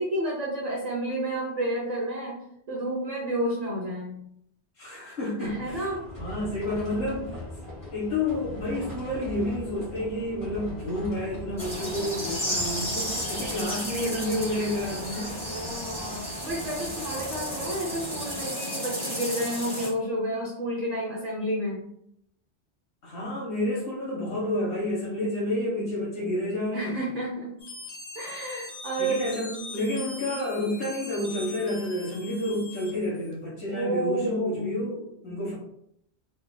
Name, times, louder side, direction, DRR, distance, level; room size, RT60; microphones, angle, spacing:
voice 1, 0.0-2.4 2.7-4.2 5.4-6.0 15.4-21.9 26.7-27.6 28.1-29.2 29.7-30.1 32.5-32.6 33.7-34.8, right 1 dB, 45° right, -4 dB, 0.7 m, -30 dB
voice 2, 4.8-5.9 6.2-7.4 7.9-15.4 23.0-27.0 29.0-35.5, left 1 dB, 60° left, -7 dB, 1.6 m, -30 dB
sound 1, 5.4-18.5, left 1 dB, 25° left, 1.2 m, -41 dB
sound 2, 11.6-19.9, equal, 5° left, 1.3 m, -33 dB
sound 3, 27.6-33.3, left 3 dB, 40° left, 0.8 m, -41 dB
4.2 x 2.8 x 2.2 m, 0.75 s
omnidirectional pair, 1.2 m